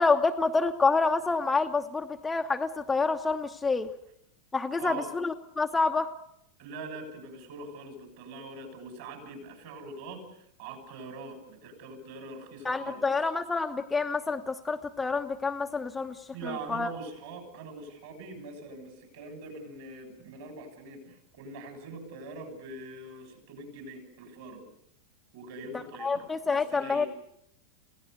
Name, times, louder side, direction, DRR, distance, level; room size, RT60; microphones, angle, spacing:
voice 1, 0.0-3.9 4.5-6.1 12.6-16.2 16.7-16.9 26.0-27.1, left 4 dB, 10° left, 4 dB, 1.0 m, -27 dB
voice 2, 4.8-5.1 6.6-13.0 16.3-24.6 25.3-27.1, right 3 dB, 50° right, 6 dB, 6.8 m, -43 dB
28.0 x 17.0 x 8.1 m, 0.73 s
figure-of-eight pair, 90°, 0 cm